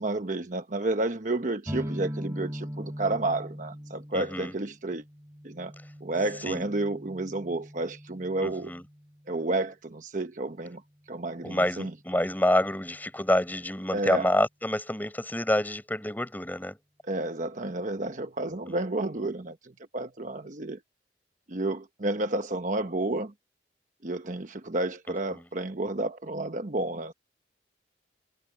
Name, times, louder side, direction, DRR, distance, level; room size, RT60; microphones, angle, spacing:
voice 1, 0.0-5.0 5.4-5.7 6.0-8.7 9.3-10.8 11.1-11.9 13.9-14.3 17.0-20.8 21.5-23.3 24.0-27.1, right 2 dB, 45° right, 1.1 m, -31 dB
sound 1, 1.7-9.3, equal, 15° right, 3.2 m, -40 dB
voice 2, 4.1-4.5 6.5-6.7 8.4-8.8 11.4-16.8 18.5-18.8 25.3-25.4, left 1 dB, 10° left, 5.4 m, -28 dB
head